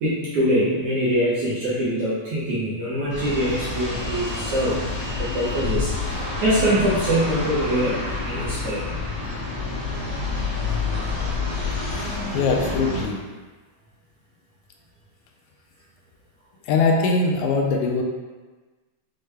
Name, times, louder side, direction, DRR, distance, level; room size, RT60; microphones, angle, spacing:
voice 1, 0.0-4.8 5.3-5.9 6.4-8.0 8.2-9.0, equal, 70° right, -8 dB, 1.5 m, -23 dB
sound 1, 3.1-13.0, left 3 dB, 55° left, 1.4 m, -28 dB
voice 2, 12.3-13.2 16.7-18.0, left 3 dB, 80° left, 1 dB, 1.8 m, -21 dB
6.4 x 2.2 x 3.2 m, 1.3 s
omnidirectional pair, 3.5 m